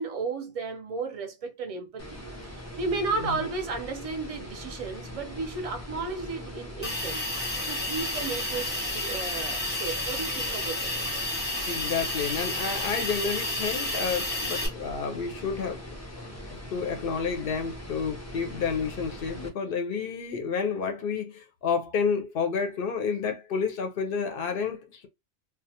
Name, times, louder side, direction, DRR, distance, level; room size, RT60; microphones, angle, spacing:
voice 1, 0.0-7.2 7.7-10.9, right 4 dB, 45° right, 0.5 m, -34 dB
sound 1, 2.0-19.5, equal, 25° left, 0.3 m, -41 dB
Hiss, 6.8-14.7, left 1 dB, 10° left, 0.8 m, -31 dB
voice 2, 11.7-15.9 16.2-25.1, left 5 dB, 60° left, 0.6 m, -30 dB
2.3 x 2.1 x 2.7 m
omnidirectional pair, 1.2 m